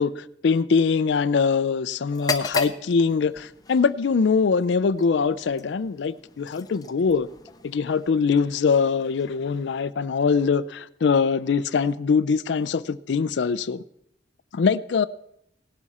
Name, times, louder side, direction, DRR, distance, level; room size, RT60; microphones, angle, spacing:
voice 1, 0.0-7.3 7.6-13.8 14.5-15.1, left 5 dB, 75° left, 0.4 m, -23 dB
sound 1, 2.1-9.9, left 4 dB, 20° left, 0.6 m, -36 dB
18.0 x 12.0 x 4.2 m
head